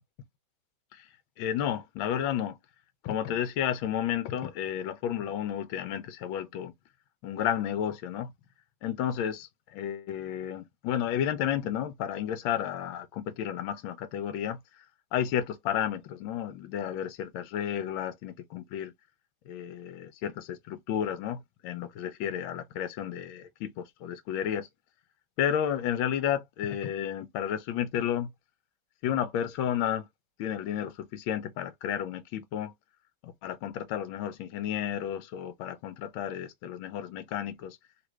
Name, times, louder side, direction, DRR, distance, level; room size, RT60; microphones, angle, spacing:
voice 1, 1.4-2.6 3.0-6.7 7.2-8.3 8.8-14.9 15.1-18.9 19.5-24.7 25.4-28.3 29.0-30.0 30.4-32.7 33.2-37.8, left 10 dB, 85° left, 1.4 m, -32 dB
3.6 x 2.5 x 3.0 m
omnidirectional pair, 2.1 m